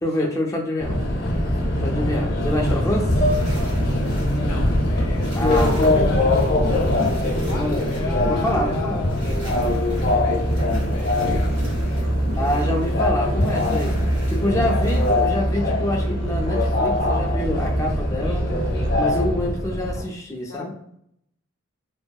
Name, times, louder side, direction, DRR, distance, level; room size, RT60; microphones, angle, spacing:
voice 1, 0.0-1.0 1.8-3.1 5.4-5.9 7.6-7.8 8.3-9.0 12.4-14.0 14.3-18.5 19.0-20.7, left 1 dB, 15° left, 0 dB, 0.3 m, -26 dB
Subway metro underground, 0.8-20.0, left 1 dB, 50° left, 0.7 m, -23 dB
sound 1, 2.5-2.6 2.9-15.3, equal, 90° right, 1.3 m, -32 dB
voice 2, 3.4-3.7 4.2-6.2 7.2-9.3 9.9-11.7 15.0-15.7 20.5-20.8, left 4 dB, 90° left, 0 dB, 0.5 m, -35 dB
Musical instrument, 9.5-19.6, right 1 dB, 60° right, 0.4 m, -27 dB
2.7 x 2.3 x 2.2 m, 0.72 s
head